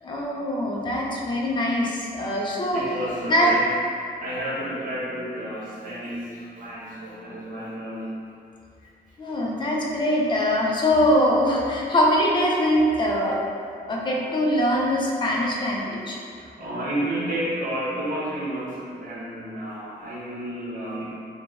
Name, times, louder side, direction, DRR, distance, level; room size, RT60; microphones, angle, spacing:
voice 1, 0.0-2.8 3.2-3.5 9.2-13.4 13.9-16.2, equal, 25° left, -3 dB, 0.5 m, -22 dB
voice 2, 2.7-8.2 16.4-21.1, right 1 dB, 50° right, -8 dB, 1.1 m, -31 dB
3.9 x 2.3 x 3.5 m, 2.4 s
cardioid pair, 160°, 18 cm